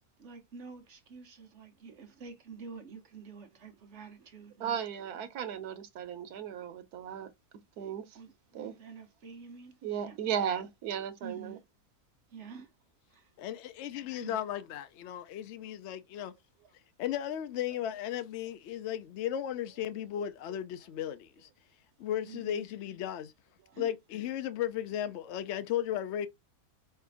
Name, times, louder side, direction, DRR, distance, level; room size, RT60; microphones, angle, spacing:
voice 1, 0.2-4.8 8.1-9.8 10.0-10.2 11.2-11.6 12.3-12.7 13.1-13.3 14.2-14.4 22.2-22.6 23.7-23.9, right 5 dB, 55° right, 1.2 m, -48 dB
voice 2, 4.6-7.3 7.8-8.2 8.5-8.8 9.8-11.6, right 8 dB, 90° right, 1.3 m, -36 dB
voice 3, 13.4-16.3 17.0-21.5 22.0-23.3 23.8-26.3, left 11 dB, 65° left, 0.7 m, -35 dB
4.4 x 3.4 x 3.5 m
omnidirectional pair, 1.6 m